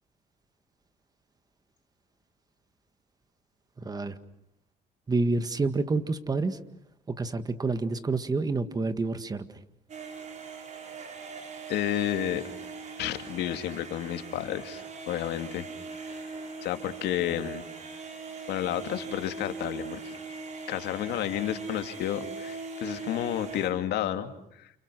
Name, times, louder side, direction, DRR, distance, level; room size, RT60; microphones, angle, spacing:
voice 1, 5.1-6.6 7.2-9.4, right 3 dB, 20° right, 11 dB, 1.9 m, -28 dB
sound 1, 9.9-23.7, right 4 dB, 45° right, 6.7 m, -41 dB
voice 2, 11.7-12.4 13.0-15.7 16.6-17.6 18.5-20.2 20.7-24.7, left 12 dB, 80° left, 7 dB, 2.5 m, -31 dB
29.5 x 29.0 x 6.3 m, 0.76 s
cardioid pair, 110°, 17 cm